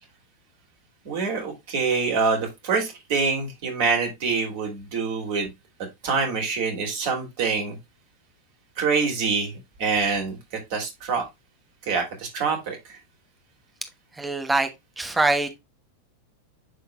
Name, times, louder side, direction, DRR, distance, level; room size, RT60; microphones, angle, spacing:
voice 1, 1.0-5.5 6.0-7.8 8.8-10.4 10.7-11.2 11.8-12.8, right 5 dB, 50° right, 2.7 m, -25 dB
voice 2, 14.1-14.7 15.0-15.6, right 2 dB, 10° right, 1.1 m, -23 dB
11.5 x 3.9 x 2.2 m
figure-of-eight pair, 90°, 0 cm